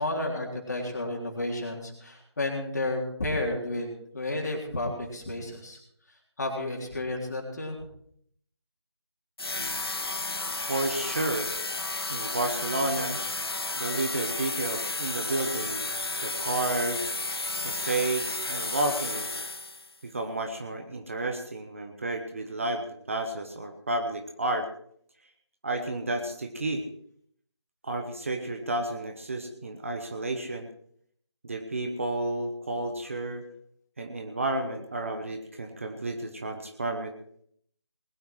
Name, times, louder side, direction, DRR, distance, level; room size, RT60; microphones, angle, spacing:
voice 1, 0.0-5.8 6.4-7.8, left 2 dB, 40° left, 0 dB, 3.7 m, -32 dB
sound 1, 9.4-19.9, left 2 dB, 60° left, 1.0 m, -32 dB
voice 2, 10.7-11.5 12.1-13.2 13.7-15.9 16.2-17.1 17.6-19.5 20.0-24.7 25.6-26.9 27.8-30.7 31.4-33.4 34.0-37.2, right 2 dB, 30° right, 5 dB, 1.1 m, -31 dB
20.0 x 9.3 x 4.6 m, 0.65 s
figure-of-eight pair, 165°, 14 cm